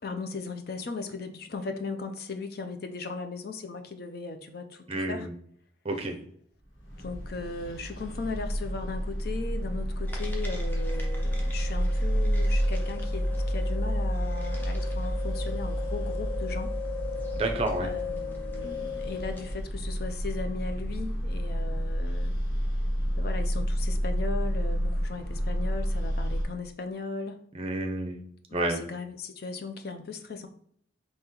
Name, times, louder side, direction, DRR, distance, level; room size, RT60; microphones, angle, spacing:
voice 1, 0.0-5.3 7.0-16.7 17.8-22.3 23.2-27.4 28.5-30.5, left 4 dB, 55° left, 6 dB, 0.5 m, -37 dB
voice 2, 4.9-5.3 5.8-6.1 17.3-17.9 27.5-28.2 28.5-28.8, right 2 dB, 30° right, 4 dB, 0.6 m, -30 dB
sound 1, 6.8-26.4, equal, 85° left, 1.7 m, -30 dB
sound 2, 10.1-19.6, left 6 dB, 10° left, 0.7 m, -39 dB
4.2 x 2.9 x 3.8 m, 0.63 s
head